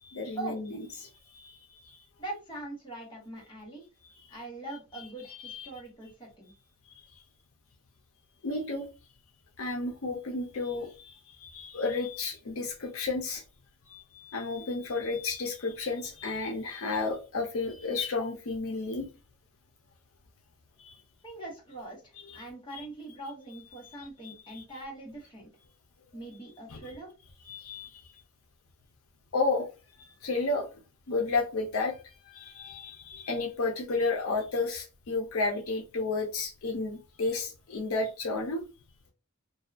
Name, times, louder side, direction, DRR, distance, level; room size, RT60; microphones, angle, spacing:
voice 1, 0.0-2.0 5.4-5.7 6.9-7.0 8.4-8.9 9.6-13.4 13.9-19.1 20.8-21.0 22.7-22.8 24.0-24.6 26.7-26.9 27.4-28.0 29.3-29.7 30.2-30.7 31.1-38.6, left 3 dB, 80° left, 2 dB, 0.6 m, -32 dB
voice 2, 2.2-3.9 4.3-6.5 21.2-25.5 26.1-27.1, right 2 dB, 20° left, -3 dB, 1.1 m, -42 dB
2.6 x 2.3 x 2.4 m, 0.31 s
head